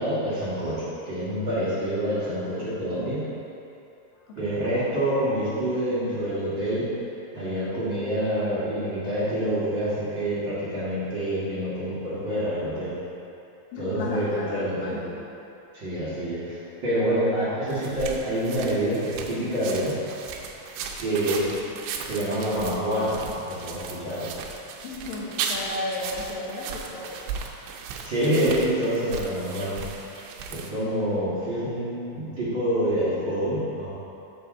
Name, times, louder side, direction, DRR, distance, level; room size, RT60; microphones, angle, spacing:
voice 1, 0.0-3.3 4.3-6.9 7.3-12.9 13.8-15.0 15.7-19.9 21.0-21.5 22.1-23.2 23.4-24.3 28.0-30.2 30.5-33.9, right 1 dB, 45° right, -13 dB, 1.6 m, -27 dB
voice 2, 4.3-4.7 13.7-15.2 21.4-21.8 24.8-27.2, left 2 dB, 65° left, -5 dB, 2.5 m, -34 dB
sound 1, 17.7-30.7, right 5 dB, 90° right, 3.0 m, -36 dB
8.2 x 6.9 x 3.9 m, 2.9 s
omnidirectional pair, 5.1 m